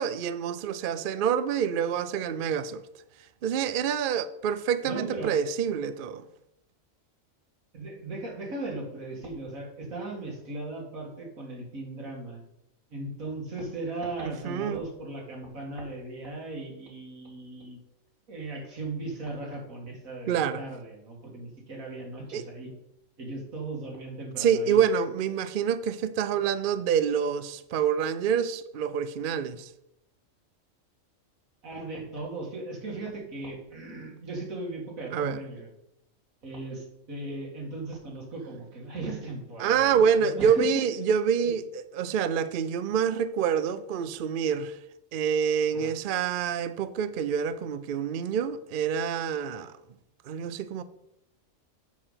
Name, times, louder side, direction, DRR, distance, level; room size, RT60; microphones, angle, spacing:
voice 1, 0.0-2.8 3.4-6.2 14.2-14.8 20.3-20.6 22.3-22.4 24.4-29.7 35.1-35.4 39.6-44.8 45.1-49.7 50.3-50.8, right 7 dB, 60° right, 0.6 m, -27 dB
voice 2, 4.8-5.4 7.7-12.4 12.9-17.8 18.3-22.7 23.2-24.8 31.6-35.7 36.4-40.8 41.4-41.5 45.7-45.9, right 2 dB, 90° right, 2.6 m, -37 dB
7.3 x 6.7 x 5.7 m
omnidirectional pair, 1.4 m